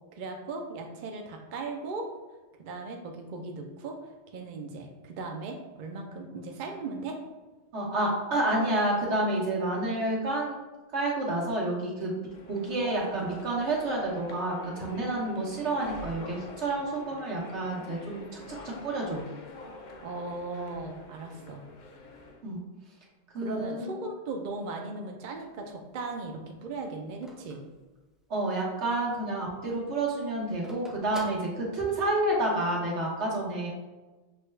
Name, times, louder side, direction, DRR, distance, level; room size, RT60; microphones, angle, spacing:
voice 1, 0.1-2.1 2.6-4.0 4.3-7.2 20.0-21.6 23.4-27.6, right 3 dB, 55° right, 2 dB, 0.6 m, -37 dB
voice 2, 7.7-10.6 10.9-12.2 12.5-19.2 22.4-22.6 23.3-24.0 28.3-33.7, right 2 dB, 80° right, -3 dB, 1.4 m, -29 dB
sound 1, 12.3-22.4, left 2 dB, 50° left, 0.6 m, -46 dB
Telephone, 25.4-28.6 29.0-29.1 29.3-32.2, right 1 dB, ahead, 0.4 m, -48 dB
6.2 x 2.2 x 3.2 m, 1.2 s
omnidirectional pair, 1.2 m